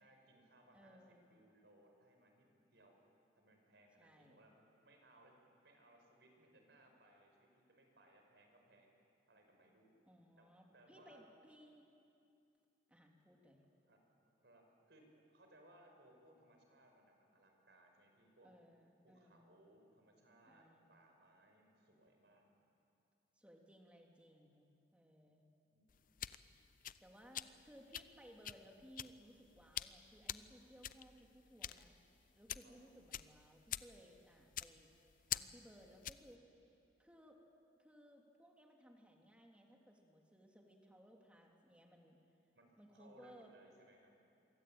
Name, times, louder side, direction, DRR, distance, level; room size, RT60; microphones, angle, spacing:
voice 1, 0.0-3.0 3.4-4.5 4.8-9.0 9.3-9.9 10.4-11.2 13.7-14.0 14.4-18.5 19.0-22.5 25.6-25.9 32.6-32.9 42.5-44.1, right 1 dB, 65° right, 2 dB, 5.6 m, -67 dB
voice 2, 0.7-1.3 4.0-4.4 10.1-11.9 12.9-13.6 18.4-19.5 20.4-20.9 23.4-25.4 27.0-32.0 32.3-34.9 35.3-36.4 37.0-37.4 37.8-42.2 42.8-43.5, equal, 5° right, 1 dB, 3.1 m, -62 dB
sound 1, 25.9-36.3, left 11 dB, 50° left, 0.6 m, -47 dB
27.0 x 24.0 x 9.0 m, 2.6 s
head